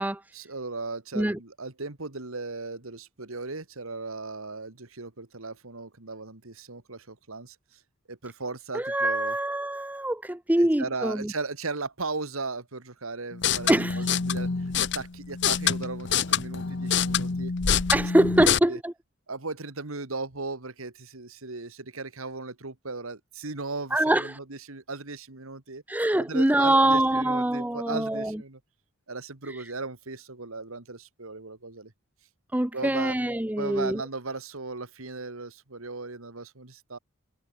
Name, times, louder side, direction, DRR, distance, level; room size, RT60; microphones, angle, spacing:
voice 1, 0.3-7.8 8.1-9.4 10.6-17.5 18.0-18.8 19.3-25.8 26.3-28.6 29.1-31.9 32.7-33.1 33.6-37.0, right 3 dB, 80° right, 2.1 m, -37 dB
voice 2, 8.7-11.3 13.7-14.0 17.9-18.9 23.9-24.4 25.9-28.4 32.5-34.0, right 1 dB, 10° right, 0.5 m, -24 dB
sound 1, 13.3-18.6, left 7 dB, 55° left, 0.8 m, -26 dB
head